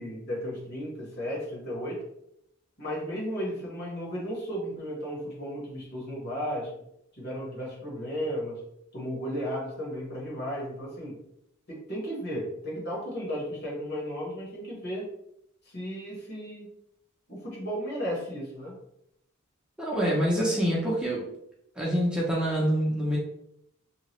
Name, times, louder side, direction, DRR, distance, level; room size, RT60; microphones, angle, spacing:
voice 1, 0.0-2.0 2.8-6.7 7.1-8.6 8.9-11.1 11.7-15.1 15.7-16.7 17.3-18.7, equal, 50° left, -3 dB, 1.2 m, -34 dB
voice 2, 19.8-21.2 21.8-23.2, equal, 5° right, -6 dB, 0.6 m, -26 dB
2.8 x 2.3 x 3.0 m, 0.76 s
head